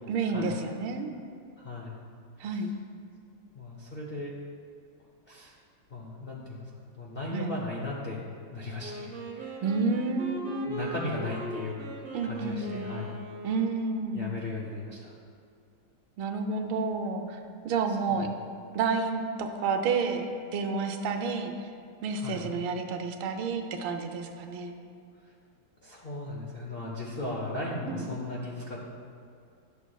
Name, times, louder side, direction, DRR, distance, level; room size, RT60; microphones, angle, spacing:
voice 1, 0.1-1.1 2.4-2.7 7.3-7.5 9.6-10.9 12.1-12.9 13.4-14.2 16.2-18.3 18.7-21.5 22.0-24.7 27.9-28.0, right 4 dB, 85° right, 5 dB, 1.4 m, -30 dB
voice 2, 1.6-2.0 2.5-2.6 3.5-4.4 5.3-5.5 5.9-8.2 8.5-9.6 10.7-11.7 12.2-13.2 14.1-15.2 17.9-18.3 22.1-22.5 25.8-28.9, left 2 dB, 75° left, -4 dB, 0.5 m, -37 dB
Wind instrument woodwind instrument, 8.8-14.0, right 1 dB, 65° right, 0.4 m, -40 dB
11.0 x 7.0 x 2.3 m, 2.4 s
omnidirectional pair, 2.2 m